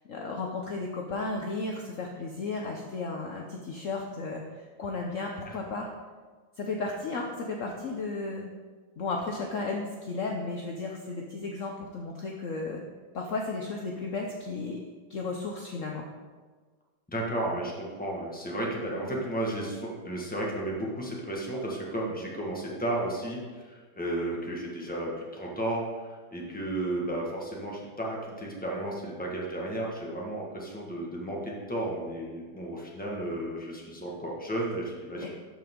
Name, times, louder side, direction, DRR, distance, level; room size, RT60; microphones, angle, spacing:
voice 1, 0.1-4.4 4.8-5.9 6.6-8.5 9.0-12.8 13.1-14.8 15.1-16.1 35.2-35.3, left 3 dB, 65° left, 1 dB, 0.8 m, -34 dB
voice 2, 17.1-35.3, right 1 dB, 5° left, -3 dB, 1.3 m, -33 dB
12.5 x 5.4 x 3.7 m, 1.4 s
omnidirectional pair, 2.2 m